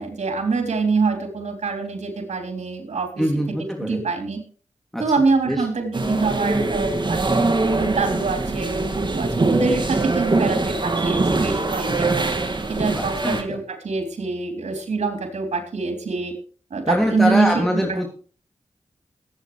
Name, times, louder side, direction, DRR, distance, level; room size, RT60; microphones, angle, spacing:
voice 1, 0.0-3.1 3.8-4.4 5.0-7.4 7.7-12.3 12.7-16.3 16.7-18.1, right 4 dB, 80° right, 4 dB, 3.7 m, -25 dB
voice 2, 3.2-4.0 4.9-5.0 5.4-5.7 12.9-13.6 16.9-18.1, equal, ahead, 1 dB, 3.1 m, -23 dB
sound 1, 5.9-13.4, right 3 dB, 40° right, 2.4 m, -23 dB
21.5 x 9.0 x 3.4 m, 0.39 s
cardioid pair, 40°, 12 cm